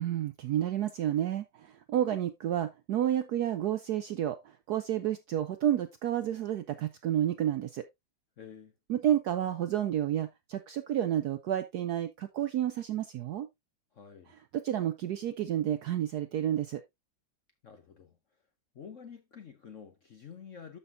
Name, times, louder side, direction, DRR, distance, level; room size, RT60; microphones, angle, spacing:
voice 1, 0.0-7.8 8.9-13.5 14.5-16.8, right 11 dB, 70° right, 0.9 m, -30 dB
voice 2, 8.4-8.7 13.9-14.3 17.6-18.2 18.7-20.8, left 7 dB, 55° left, 0.9 m, -49 dB
12.0 x 5.6 x 2.5 m
omnidirectional pair, 2.2 m